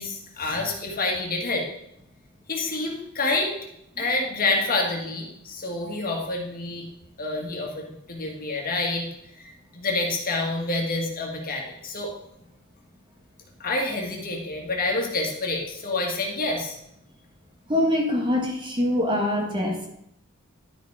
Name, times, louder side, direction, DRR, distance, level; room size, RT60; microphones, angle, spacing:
voice 1, 0.0-1.6 2.5-3.5 4.0-6.9 7.2-9.1 9.3-12.1 13.6-16.8, left 2 dB, 45° left, 0 dB, 1.7 m, -28 dB
voice 2, 17.7-19.9, left 1 dB, 25° right, 2 dB, 1.2 m, -24 dB
11.5 x 5.1 x 4.8 m, 0.78 s
head